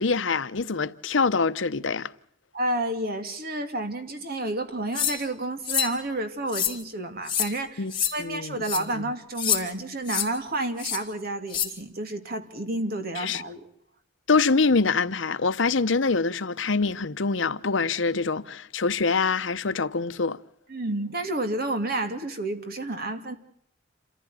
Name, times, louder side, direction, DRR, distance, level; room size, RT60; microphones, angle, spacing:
voice 1, 0.0-2.1 7.8-7.9 8.2-8.6 13.2-13.4 14.3-20.4, left 4 dB, 75° left, 0.9 m, -25 dB
voice 2, 2.5-7.8 8.1-13.7 20.7-23.4, right 2 dB, 50° right, 2.7 m, -30 dB
sound 1, 4.9-5.2 5.6-5.9 6.5-6.8 7.3-7.5 7.9-8.1 8.6-8.8 9.4-9.6 10.1-10.3 10.8-11.0 11.5-11.7, left 9 dB, 25° left, 3.6 m, -26 dB
28.0 x 14.5 x 8.5 m
head